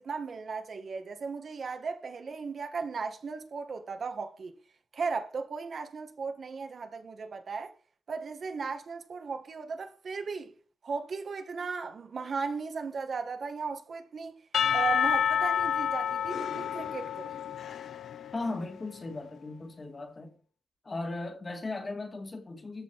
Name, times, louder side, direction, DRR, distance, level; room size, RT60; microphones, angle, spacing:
voice 1, 0.0-4.5 4.9-7.7 8.1-10.5 10.8-14.4 14.7-17.3, right 5 dB, 50° right, 1.6 m, -36 dB
Percussion / Church bell, 14.5-18.7, left 8 dB, 80° left, 0.5 m, -29 dB
voice 2, 18.3-20.3 20.9-22.8, left 2 dB, 30° left, 2.3 m, -37 dB
13.5 x 5.2 x 5.9 m
wide cardioid pair, 170°, 0 cm